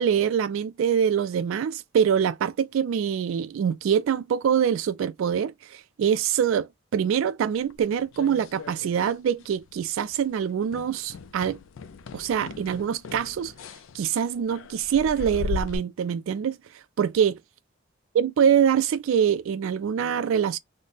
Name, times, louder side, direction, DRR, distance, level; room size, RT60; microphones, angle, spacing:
voice 1, 0.0-11.6 12.1-13.5 13.9-16.6 17.0-17.4 18.1-20.6, right 8 dB, 80° right, 0.3 m, -24 dB
sound 1, 7.7-9.2 9.4-9.8 10.1-10.3 10.7-15.8, left 4 dB, 75° left, 0.4 m, -38 dB
3.2 x 2.1 x 4.0 m
head